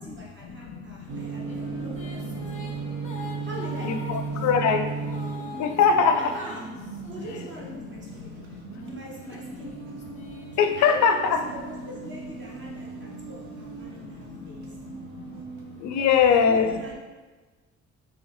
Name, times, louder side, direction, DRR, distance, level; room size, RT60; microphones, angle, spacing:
voice 1, 0.0-2.2 3.4-4.5 6.2-6.7 7.1-8.3 8.9-9.7 10.8-14.7 16.0-16.9, right 1 dB, 40° right, -3 dB, 1.2 m, -41 dB
voice 2, 0.6-1.9 2.2-2.9 3.8-5.2 5.6-6.2 7.8-8.9 10.1-10.3 10.6-11.4 13.1-13.3 13.8-15.4 15.8-16.7, left 6 dB, 70° left, 7 dB, 0.4 m, -25 dB
sound 1, 1.1-8.1 8.8-12.5, left 2 dB, 25° left, 0.7 m, -45 dB
sound 2, 1.1-16.0, right 4 dB, 75° right, 0.7 m, -37 dB
3.8 x 2.9 x 3.3 m, 1.3 s
cardioid pair, 90°, 30 cm